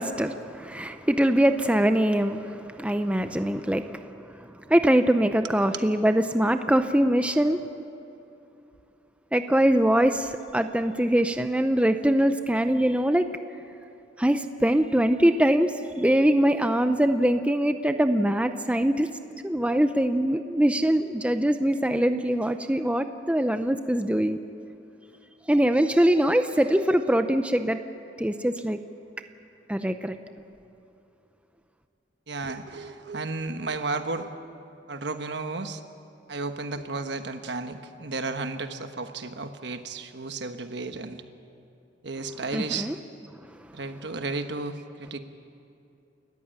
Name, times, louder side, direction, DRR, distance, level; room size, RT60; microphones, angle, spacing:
voice 1, 0.0-4.0 4.7-7.6 9.3-13.3 14.2-19.1 19.4-24.4 25.5-27.8 28.2-28.8 29.7-30.2 42.5-43.0, right 1 dB, 5° right, 8 dB, 0.6 m, -23 dB
voice 2, 32.3-34.3 34.9-35.8 36.3-41.2 42.0-42.9 43.7-45.2, right 3 dB, 65° right, 8 dB, 1.3 m, -33 dB
29.0 x 14.5 x 8.9 m, 2.7 s
head